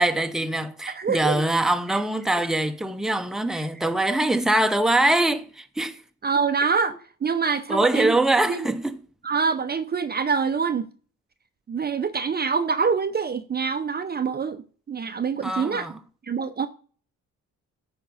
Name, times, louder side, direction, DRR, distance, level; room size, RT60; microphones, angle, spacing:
voice 1, 0.0-6.0 7.7-8.9 15.4-16.0, right 1 dB, ahead, 0.8 m, -23 dB
voice 2, 0.9-1.4 1.9-2.0 2.3-2.5 3.5-3.7 6.2-8.2 8.5-8.7 9.2-10.9 11.7-15.9 16.2-16.7, right 5 dB, 35° right, 0.7 m, -26 dB
9.2 x 5.3 x 5.3 m
cardioid pair, 90°, 30 cm